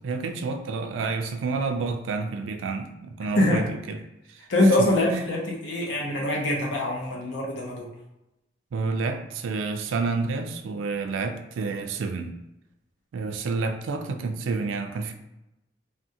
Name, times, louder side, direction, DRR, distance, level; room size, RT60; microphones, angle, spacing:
voice 1, 0.0-4.4 4.8-5.2 8.7-12.3 13.1-15.1, right 4 dB, 85° right, 6 dB, 0.3 m, -29 dB
voice 2, 4.5-7.9, left 1 dB, 70° left, -2 dB, 0.6 m, -23 dB
3.5 x 2.1 x 2.7 m, 0.91 s
head